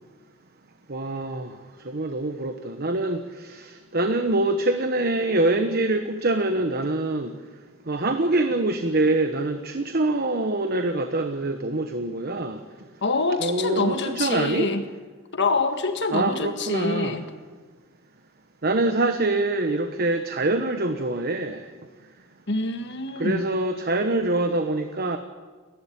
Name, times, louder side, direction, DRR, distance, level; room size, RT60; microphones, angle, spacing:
voice 1, 0.9-7.4 7.9-12.6 13.4-14.7 16.1-17.2 18.6-21.7 23.2-25.2, right 2 dB, 50° right, 7 dB, 1.1 m, -25 dB
voice 2, 13.0-14.8 15.3-17.3 22.5-23.5, left 3 dB, 55° left, 7 dB, 1.8 m, -25 dB
29.5 x 12.0 x 8.8 m, 1.4 s
head